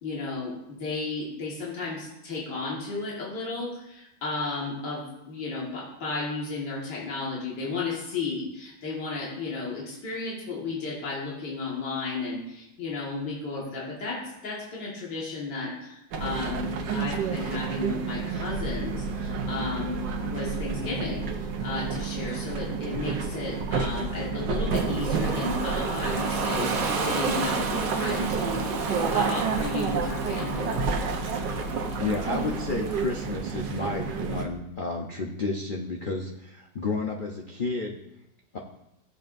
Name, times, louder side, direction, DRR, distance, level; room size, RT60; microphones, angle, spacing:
voice 1, 0.0-30.7, left 3 dB, 75° left, -5 dB, 2.4 m, -34 dB
sound 1, 16.1-34.5, right 5 dB, 85° right, 1.6 m, -30 dB
Ocean, 24.7-33.5, right 3 dB, 60° right, 1.3 m, -32 dB
voice 2, 32.0-38.0 38.5-38.6, left 3 dB, 45° left, 0 dB, 0.6 m, -31 dB
15.0 x 7.2 x 2.6 m, 0.86 s
omnidirectional pair, 1.9 m